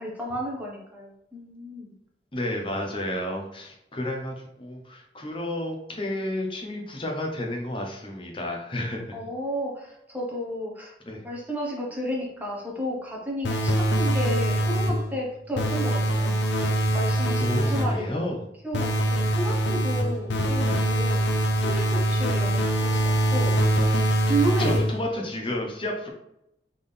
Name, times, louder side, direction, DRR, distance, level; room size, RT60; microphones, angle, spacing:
voice 1, 0.0-1.9 9.1-10.9 11.2-16.4 16.9-18.3 18.6-23.8 24.2-24.9 25.2-25.3, right 1 dB, 10° right, -3 dB, 1.1 m, -32 dB
voice 2, 2.3-9.2 11.1-11.2 17.4-18.4 20.6-20.8 24.6-26.1, left 1 dB, 30° left, 2 dB, 0.8 m, -31 dB
sound 1, 13.4-15.1 15.6-18.1 18.7-25.1, right 1 dB, 80° left, 0.5 m, -23 dB
3.8 x 3.7 x 3.4 m, 0.82 s
head